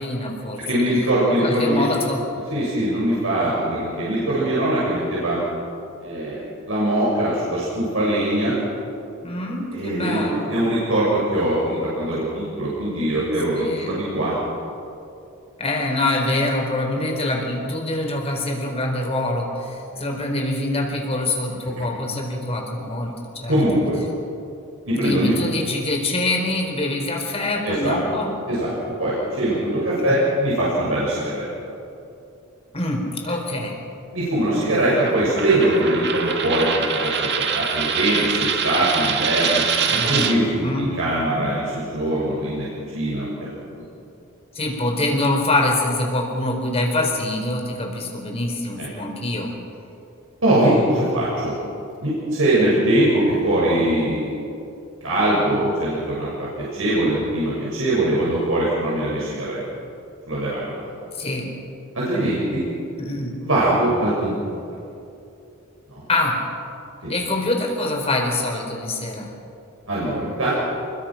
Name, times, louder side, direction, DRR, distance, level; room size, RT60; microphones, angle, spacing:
voice 1, 0.0-0.8 1.3-2.2 9.2-10.6 13.5-14.0 15.6-23.6 24.9-28.3 30.1-30.2 32.7-33.8 39.9-41.0 44.5-49.5 61.1-61.5 63.0-63.4 66.1-66.5 67.1-69.3, left 2 dB, 30° left, 1 dB, 4.3 m, -25 dB
voice 2, 0.6-1.8 2.5-5.4 6.0-6.4 6.7-8.6 9.7-10.2 10.5-14.4 21.8-21.9 23.5-24.0 24.9-25.3 27.6-28.0 28.5-28.7 29.0-31.5 34.1-39.6 39.9-43.5 43.7-43.8 48.8-48.9 50.4-51.5 52.0-54.3 55.0-59.6 60.3-60.9 61.9-62.6 63.4-64.5 65.9-66.0 67.0-67.1 69.9-70.5, right 1 dB, 70° right, -7 dB, 6.6 m, -22 dB
Coin (dropping), 34.8-40.3, right 6 dB, 55° right, 1.9 m, -24 dB
29.0 x 22.5 x 5.9 m, 2.7 s
head